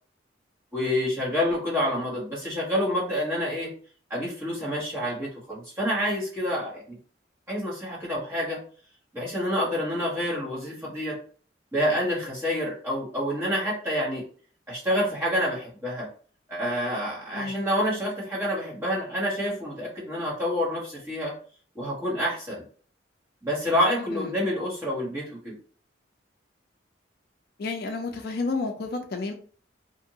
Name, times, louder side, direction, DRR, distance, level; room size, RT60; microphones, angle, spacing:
voice 1, 0.7-3.7 4.1-6.8 7.5-8.6 9.1-11.1 11.7-14.2 14.7-16.1 16.5-21.3 21.7-22.6 23.4-25.5, equal, 15° right, -7 dB, 1.2 m, -28 dB
voice 2, 17.3-17.7 24.1-24.4 27.6-29.3, left 3 dB, 55° left, 4 dB, 0.4 m, -31 dB
2.6 x 2.5 x 2.7 m, 0.43 s
head